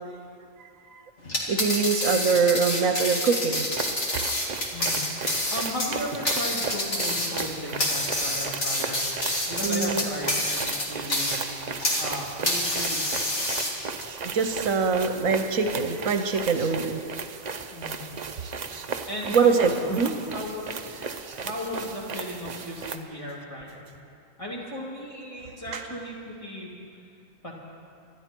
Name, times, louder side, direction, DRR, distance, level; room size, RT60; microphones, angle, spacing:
sound 1, 1.2-12.1 12.5-14.0, left 1 dB, 55° left, 2.3 m, -28 dB
voice 1, 1.5-3.7 9.6-10.1 14.3-17.0 19.2-20.1 25.7-25.8, right 5 dB, 75° right, 7 dB, 1.2 m, -23 dB
sound 2, 3.7-23.0, right 5 dB, 40° right, 0.7 m, -36 dB
voice 2, 4.7-5.0 5.5-9.0 9.5-11.7 12.0-13.3 17.7-18.0 19.1-19.7 20.3-21.0 21.3-23.8 24.4-26.7 27.4-27.5, equal, 25° left, -4 dB, 3.0 m, -36 dB
26.0 x 12.0 x 4.5 m, 2.4 s
omnidirectional pair, 1.4 m